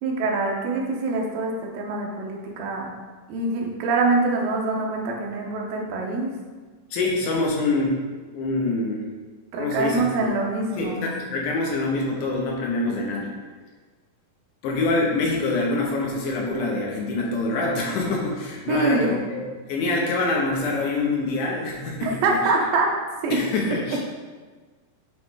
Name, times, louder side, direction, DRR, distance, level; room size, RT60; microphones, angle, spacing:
voice 1, 0.0-2.9 3.3-6.3 9.5-11.1 18.7-19.2 22.0-22.9 23.2-23.4, right 3 dB, 90° right, 0 dB, 2.5 m, -24 dB
voice 2, 6.9-8.0 8.3-9.1 9.6-10.3 10.8-13.3 14.6-19.4 19.7-22.4 23.3-24.0, left 2 dB, 75° left, -2 dB, 2.2 m, -25 dB
8.9 x 3.1 x 3.6 m, 1.4 s
omnidirectional pair, 4.0 m